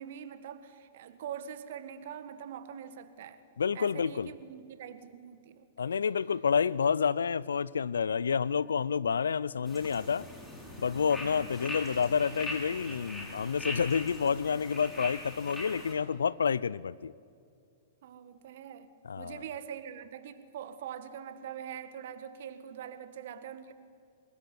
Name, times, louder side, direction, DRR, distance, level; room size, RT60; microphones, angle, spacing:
voice 1, 0.0-3.4 3.7-6.0 18.0-23.7, right 8 dB, 60° right, 11 dB, 1.7 m, -43 dB
voice 2, 3.6-4.3 5.8-10.3 10.8-17.1 19.0-19.4, left 6 dB, 75° left, 21 dB, 0.6 m, -29 dB
sound 1, 9.7-15.9, left 1 dB, 5° left, 7.9 m, -41 dB
23.5 x 20.0 x 9.6 m, 2.3 s
figure-of-eight pair, 110°, 0 cm